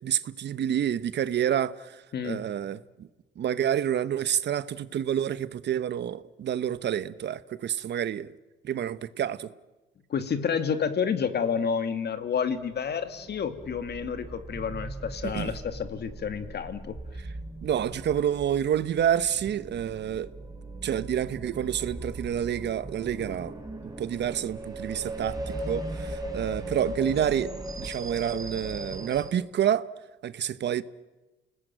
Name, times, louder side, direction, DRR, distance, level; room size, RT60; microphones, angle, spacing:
voice 1, 0.0-3.1 3.4-8.3 8.6-9.5 15.3-15.6 17.6-20.3 20.8-23.5 24.0-29.8 30.2-30.8, right 9 dB, 60° right, 1.0 m, -28 dB
voice 2, 10.1-17.0, left 6 dB, 55° left, 2.3 m, -29 dB
sound 1, 12.4-29.3, right 1 dB, 20° right, 3.8 m, -39 dB
29.0 x 19.0 x 9.0 m
cardioid pair, 90°, 20 cm